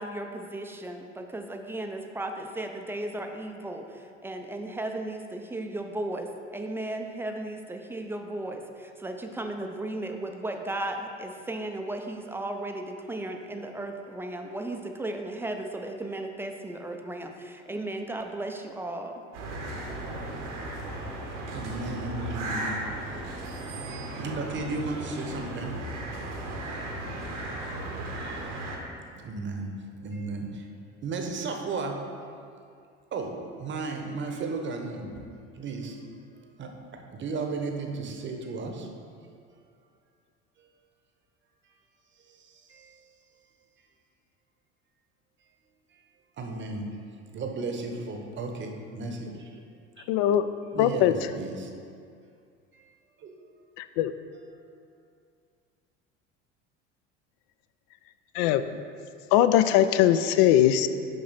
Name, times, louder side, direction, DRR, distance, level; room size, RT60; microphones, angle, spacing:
voice 1, 0.0-19.2, right 1 dB, 5° right, 4 dB, 0.4 m, -35 dB
sound 1, 19.3-28.8, right 1 dB, 70° right, 1.2 m, -36 dB
voice 2, 21.5-22.9 23.8-26.1 27.9-28.0 29.1-29.7 30.0-30.7 31.0-32.1 33.1-35.3 35.5-36.1 36.4-38.9 40.6-40.7 41.7-41.8 42.2-43.0 45.9-46.0 46.4-47.0 47.3-49.7 50.0-50.1 50.7-51.7 52.7-52.9 53.2-53.4 54.3-54.6, right 3 dB, 30° right, 3 dB, 0.9 m, -35 dB
voice 3, 50.1-50.5 50.8-51.1 53.8-54.1 58.3-58.6 59.3-60.9, left 11 dB, 50° left, 12 dB, 0.4 m, -21 dB
6.4 x 5.7 x 4.1 m, 2.3 s
figure-of-eight pair, 70°, 37 cm